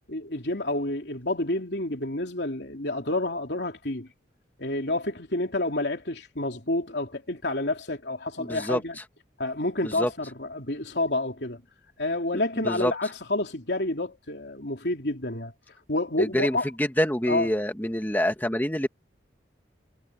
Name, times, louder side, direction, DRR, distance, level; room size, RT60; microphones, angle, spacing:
voice 1, 0.1-4.1 4.6-9.0 9.4-11.6 12.0-15.5 15.9-16.7 17.3-17.5, left 2 dB, 65° left, 3.3 m, -29 dB
voice 2, 8.4-8.8 9.8-10.1 12.6-12.9 16.2-18.9, equal, 10° left, 1.5 m, -26 dB
head